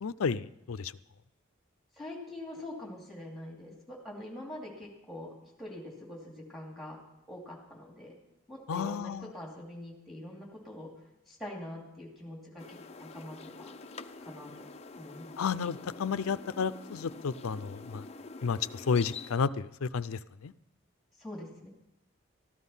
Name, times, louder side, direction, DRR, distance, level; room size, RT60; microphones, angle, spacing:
voice 1, 0.0-0.9 8.7-9.3 15.4-18.0 18.4-18.6 18.9-20.5, left 5 dB, 85° left, 15 dB, 0.5 m, -32 dB
voice 2, 2.0-7.0 7.3-8.2 8.5-10.9 11.3-13.8 14.2-14.5 15.0-15.4 21.2-21.7, left 1 dB, ahead, -1 dB, 2.5 m, -44 dB
sound 1, 12.6-19.4, left 3 dB, 30° left, 0.4 m, -46 dB
14.0 x 12.0 x 5.5 m, 0.94 s
head